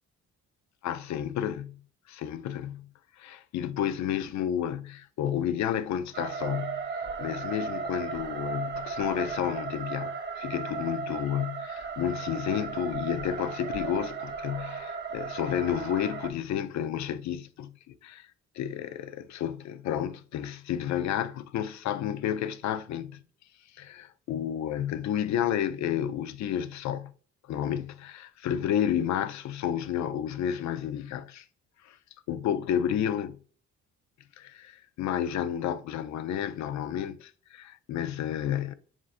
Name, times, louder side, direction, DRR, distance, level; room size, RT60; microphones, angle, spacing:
voice 1, 0.8-1.8 2.1-2.9 3.2-6.8 7.2-18.3 18.6-23.2 23.7-27.1 27.4-31.4 31.8-32.0 32.3-33.4 34.4-38.7, left 10 dB, 65° left, 0.5 m, -31 dB
sound 1, 6.1-16.3, right 5 dB, 35° right, 0.8 m, -35 dB
7.2 x 2.5 x 2.5 m
cardioid pair, 90°, 30 cm